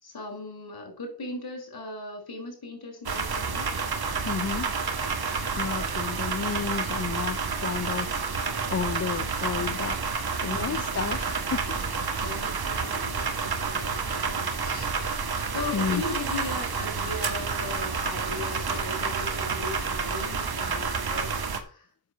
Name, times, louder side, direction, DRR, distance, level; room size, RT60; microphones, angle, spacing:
voice 1, 0.0-3.7 9.2-9.4 10.2-10.6 11.1-11.3 12.2-14.9 15.4-21.9, left 2 dB, 70° left, 4.4 m, -38 dB
sound 1, 3.1-21.6, right 5 dB, 70° right, 1.6 m, -29 dB
voice 2, 4.3-4.7 5.5-8.2 8.7-10.0 10.4-11.8 15.7-16.0, left 6 dB, 40° left, 0.6 m, -31 dB
7.9 x 7.0 x 6.6 m
wide cardioid pair, 70°, 39 cm